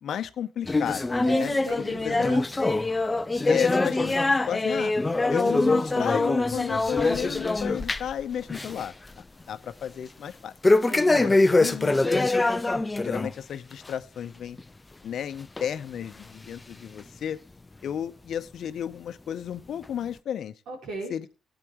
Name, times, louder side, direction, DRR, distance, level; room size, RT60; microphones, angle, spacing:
voice 1, 0.0-1.1 1.4-1.5 2.0-2.3 3.5-4.2 4.5-4.9 5.3-8.9 9.5-10.5 11.1-12.2 13.0-14.6 15.0-17.4 17.8-20.5 21.1-21.3, left 9 dB, 65° left, 11 dB, 0.8 m, -32 dB
sound 1, 0.7-8.2 8.5-8.9 9.2-9.3 10.6-13.3 13.7-13.9 14.6-14.7 15.6-15.7 16.4-16.5, left 2 dB, 20° left, 0.5 m, -23 dB
voice 2, 1.2-2.4 10.8-11.5 20.7-21.1, right 2 dB, 80° right, -2 dB, 4.8 m, -37 dB
17.5 x 9.0 x 3.1 m, 0.32 s
cardioid pair, 90°, 0 cm